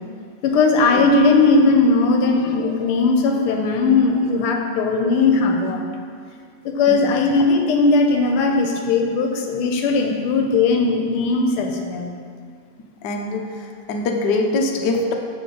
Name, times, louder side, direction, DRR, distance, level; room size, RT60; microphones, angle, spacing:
voice 1, 0.4-5.9 6.6-12.1, left 3 dB, 85° left, 3 dB, 1.5 m, -18 dB
voice 2, 13.0-13.4 13.9-15.1, left 2 dB, 65° left, 1 dB, 1.1 m, -22 dB
6.9 x 5.6 x 3.7 m, 2.2 s
omnidirectional pair, 2.4 m